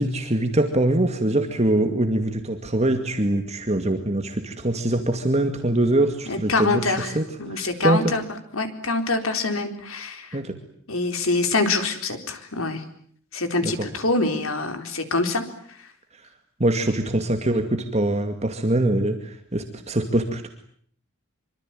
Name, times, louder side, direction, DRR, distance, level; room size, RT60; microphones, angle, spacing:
voice 1, 0.0-8.1 10.3-10.6 13.6-13.9 16.6-20.5, right 1 dB, 30° right, 6 dB, 2.2 m, -23 dB
voice 2, 6.3-7.1 7.4-8.2 8.5-10.3 10.9-12.8 13.3-15.4, left 3 dB, 85° left, 7 dB, 4.2 m, -25 dB
25.5 x 25.5 x 9.2 m, 0.62 s
head